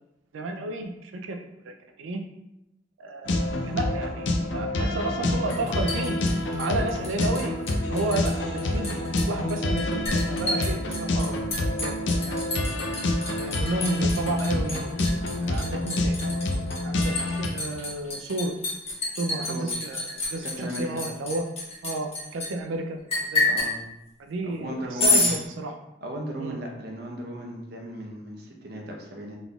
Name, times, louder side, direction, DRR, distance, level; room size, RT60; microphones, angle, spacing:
voice 1, 0.3-1.4 1.6-2.2 3.0-6.2 6.6-7.5 7.9-9.0 9.3-11.4 11.8-11.9 12.3-12.6 13.4-14.9 15.4-16.2 16.8-18.5 19.2-21.4 21.8-23.5 24.2-25.8 26.4-26.6, right 2 dB, 85° right, 4 dB, 0.4 m, -31 dB
sound 1, 3.3-17.5, left 1 dB, 65° left, 0.5 m, -27 dB
Liquid, 5.5-7.4 7.7-8.3 8.6-22.5 23.1-23.7 25.0-25.4, left 2 dB, 30° left, 1.1 m, -28 dB
voice 2, 20.4-21.0 23.4-23.8 24.4-25.2 26.0-29.4, right 1 dB, 55° right, 0 dB, 0.7 m, -36 dB
4.0 x 3.5 x 2.3 m, 0.89 s
head